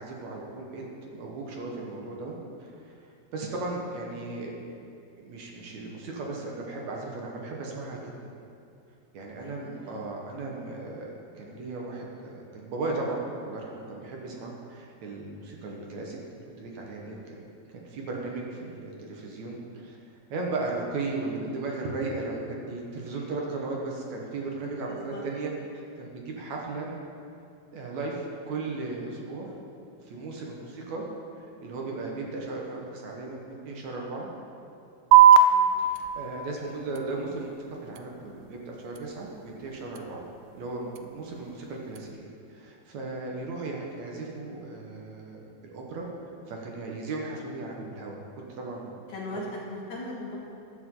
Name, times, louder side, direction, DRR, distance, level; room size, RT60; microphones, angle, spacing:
voice 1, 0.0-2.3 2.6-3.0 3.3-4.5 5.2-8.0 9.1-17.4 17.7-20.0 20.3-22.4 22.7-26.9 27.7-29.5 30.0-31.1 31.4-34.3 35.8-37.5 37.8-40.2 40.5-46.1 46.5-48.2 48.5-48.9, right 3 dB, 60° right, -1 dB, 2.0 m, -36 dB
voice 2, 9.4-10.0 17.1-17.3 17.9-18.0 24.9-25.2 29.4-29.6 30.7-30.9 35.5-35.8 41.4-41.5 49.1-50.4, left 1 dB, 55° left, -4 dB, 2.6 m, -40 dB
sound 1, 35.1-42.1, right 7 dB, 80° right, 2.2 m, -24 dB
14.5 x 11.5 x 3.9 m, 2.5 s
omnidirectional pair, 4.8 m